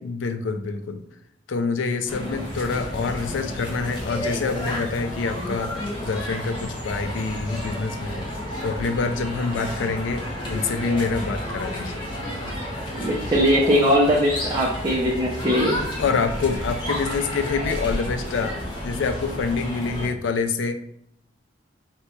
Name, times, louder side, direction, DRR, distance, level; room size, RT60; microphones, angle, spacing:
voice 1, 0.0-1.0 1.5-5.7 6.0-8.3 8.6-12.0 16.0-20.8, left 4 dB, 80° left, 8 dB, 0.4 m, -26 dB
sound 1, 2.1-20.1, left 1 dB, 25° left, 0.7 m, -31 dB
voice 2, 12.9-15.8, equal, 20° right, -5 dB, 0.5 m, -20 dB
2.8 x 2.2 x 4.2 m, 0.72 s
head